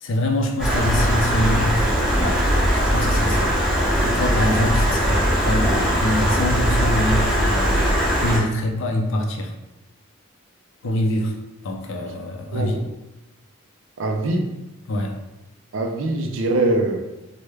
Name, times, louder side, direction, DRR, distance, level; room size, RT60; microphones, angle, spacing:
voice 1, 0.0-1.9 2.2-3.6 4.0-9.5 10.8-11.4 11.6-12.8 14.9-15.2, left 1 dB, 60° left, 3 dB, 0.4 m, -25 dB
Stream, 0.6-8.4, equal, 5° left, 1.3 m, -20 dB
voice 2, 12.5-12.8 14.0-14.6 15.7-17.0, right 2 dB, 60° right, 4 dB, 0.4 m, -22 dB
3.2 x 2.1 x 3.2 m, 0.97 s
head